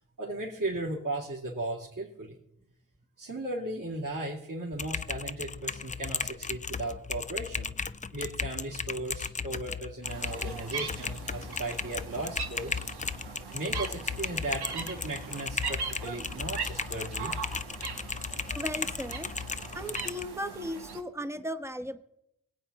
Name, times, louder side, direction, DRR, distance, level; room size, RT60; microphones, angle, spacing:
voice 1, 0.2-2.4 3.2-7.8 8.1-12.8 13.5-17.4, right 2 dB, 50° right, -6 dB, 3.0 m, -36 dB
Typing, 4.7-20.2, left 5 dB, 20° left, 0.4 m, -36 dB
sound 1, 10.0-21.0, right 5 dB, 85° right, 1.4 m, -40 dB
voice 2, 18.5-19.3 19.7-22.0, equal, 5° right, 7 dB, 1.1 m, -36 dB
22.5 x 8.3 x 4.2 m, 0.83 s
cardioid pair, 65°, 38 cm